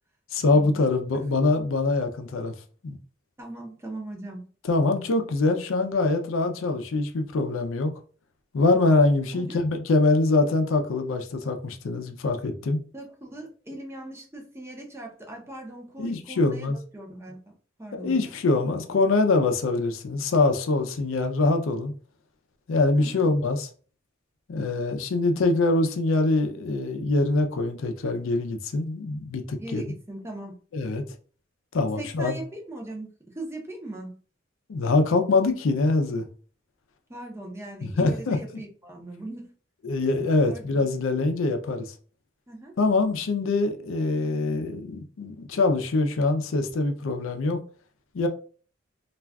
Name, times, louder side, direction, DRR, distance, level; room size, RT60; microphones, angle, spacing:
voice 1, 0.3-2.5 2.8-3.0 4.7-7.9 8.5-12.8 16.0-16.8 17.9-21.9 22.7-23.7 24.5-29.8 30.7-31.0 31.7-32.4 34.7-36.3 37.8-38.4 39.8-41.9 42.8-47.6 48.1-48.3, left 3 dB, 80° left, 0.5 m, -24 dB
voice 2, 3.4-4.5 9.3-9.6 12.9-17.5 17.8-18.4 22.9-23.3 29.6-30.6 32.0-34.2 37.1-39.5 40.4-40.9 42.5-42.7, right 1 dB, 15° right, 0.6 m, -40 dB
2.4 x 2.3 x 3.3 m
head